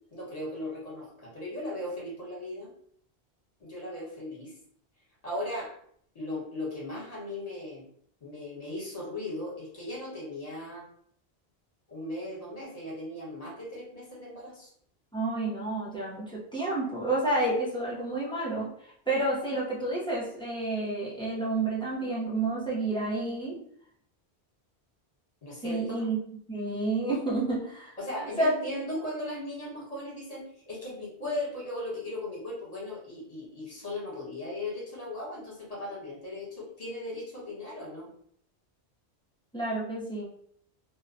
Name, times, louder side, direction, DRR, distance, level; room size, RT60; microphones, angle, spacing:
voice 1, 0.1-2.7 3.6-4.5 5.2-5.7 6.1-7.8 8.2-10.9 11.9-14.7 25.4-26.1 28.0-38.1, left 1 dB, 40° left, -6 dB, 1.2 m, -37 dB
voice 2, 15.1-23.6 25.6-26.2 26.5-28.5 28.8-28.9 39.5-40.3, right 2 dB, 5° left, -6 dB, 0.5 m, -30 dB
2.7 x 2.2 x 2.5 m, 0.65 s
omnidirectional pair, 1.1 m